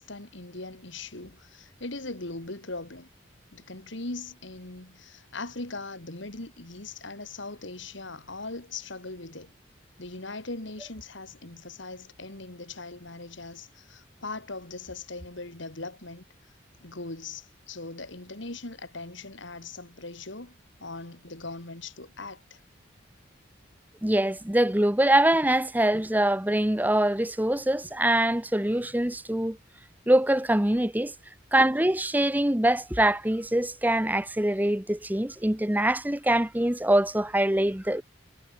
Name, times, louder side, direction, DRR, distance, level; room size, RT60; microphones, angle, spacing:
voice 1, 0.0-3.1 3.5-9.5 10.0-16.2 16.8-22.6 28.7-28.8, left 3 dB, 60° left, 2.4 m, -40 dB
voice 2, 24.0-29.6 30.1-31.1 31.5-38.0, right 1 dB, 10° right, 0.9 m, -24 dB
head